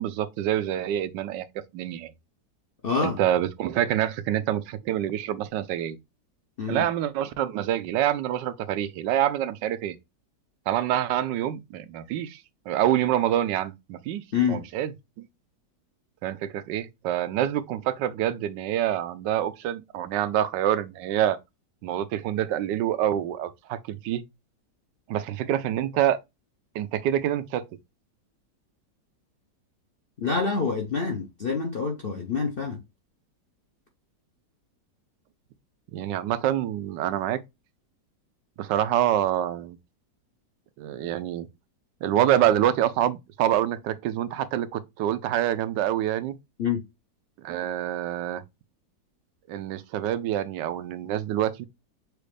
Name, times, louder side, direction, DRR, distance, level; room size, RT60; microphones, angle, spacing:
voice 1, 0.0-1.5 1.7-2.1 3.0-6.0 6.7-10.0 10.7-14.2 14.5-14.9 15.2-15.3 16.2-21.4 21.8-24.2 25.1-26.2 26.7-27.6 35.9-37.4 38.6-39.8 40.8-41.5 42.0-46.4 47.4-48.4 49.5-51.6, right 11 dB, 85° right, 1.2 m, -26 dB
voice 2, 2.8-3.2 6.6-6.8 14.3-14.6 30.2-32.8 46.6-46.8, left 5 dB, 55° left, 0.6 m, -26 dB
6.3 x 2.5 x 3.2 m
omnidirectional pair, 1.9 m